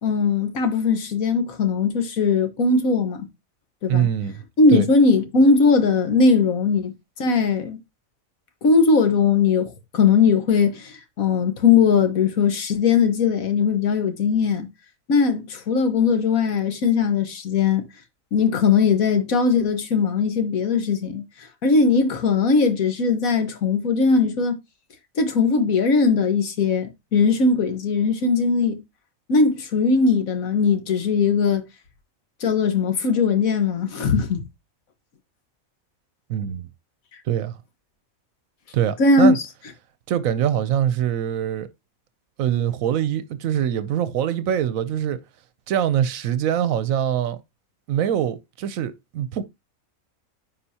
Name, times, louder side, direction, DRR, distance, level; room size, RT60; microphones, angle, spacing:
voice 1, 0.0-3.3 3.8-4.1 4.6-6.9 7.2-7.8 8.6-14.7 15.1-17.8 18.3-21.2 21.6-24.6 25.2-28.8 29.3-31.6 32.4-34.4 39.0-39.3, left 4 dB, 90° left, 1.7 m, -19 dB
voice 2, 3.9-4.4 4.7-4.9 36.3-36.7 37.3-37.6 38.7-39.4 40.1-41.7 42.4-45.2 45.7-47.4 47.9-49.4, right 10 dB, 80° right, 1.0 m, -23 dB
9.9 x 5.4 x 2.8 m
omnidirectional pair, 1.4 m